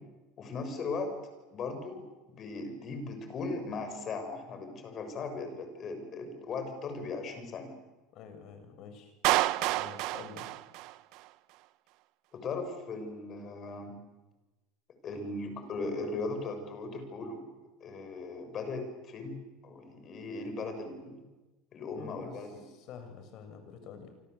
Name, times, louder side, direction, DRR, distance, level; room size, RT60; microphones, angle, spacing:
voice 1, 0.4-1.1 1.5-7.7 12.3-14.0 15.0-17.5 17.8-21.2 21.7-22.6, left 3 dB, 35° left, 7 dB, 6.8 m, -38 dB
voice 2, 8.1-9.1 9.8-10.5 21.9-24.1, left 6 dB, 55° left, 8 dB, 6.6 m, -48 dB
Clapping, 9.2-11.3, right 18 dB, 60° right, 1.0 m, -29 dB
29.0 x 24.5 x 8.3 m, 1.1 s
supercardioid pair, 125°, 0 cm